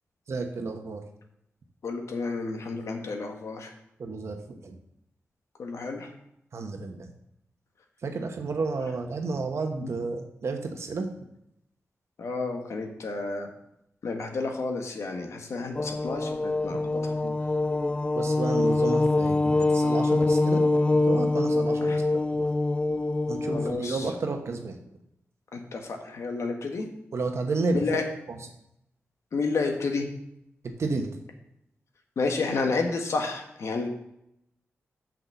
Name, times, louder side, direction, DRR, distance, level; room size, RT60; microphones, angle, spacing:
voice 1, 0.3-1.0 4.0-4.8 6.5-7.1 8.0-11.1 17.2-17.3 18.1-20.6 21.1-22.0 22.4-22.5 23.3-24.8 27.1-27.9 28.3-28.4 30.8-31.1, right 3 dB, 70° right, 4 dB, 1.1 m, -31 dB
voice 2, 1.8-3.7 5.6-6.1 9.8-9.9 12.2-13.5 14.0-17.1 21.8-22.0 23.5-24.1 25.5-26.8 27.7-28.0 29.3-30.1 32.2-33.9, left 3 dB, 75° left, 4 dB, 1.4 m, -30 dB
sound 1, 15.8-23.7, left 2 dB, 25° left, 0.3 m, -24 dB
6.0 x 6.0 x 6.9 m, 0.80 s
cardioid pair, 60°, 5 cm